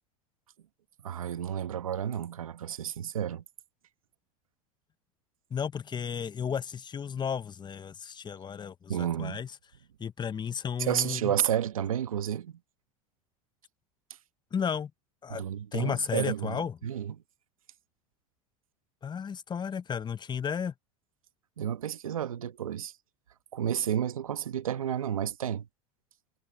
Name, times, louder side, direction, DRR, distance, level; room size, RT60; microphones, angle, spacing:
voice 1, 1.0-3.4 8.9-9.4 10.8-12.6 15.3-17.2 21.6-22.9 23.5-25.7, right 10 dB, 90° right, 1.5 m, -31 dB
voice 2, 5.5-9.5 10.0-11.3 14.5-14.9 15.2-15.4 15.7-16.8 19.0-20.7, left 7 dB, 25° left, 1.0 m, -33 dB
hypercardioid pair, 90°, 17 cm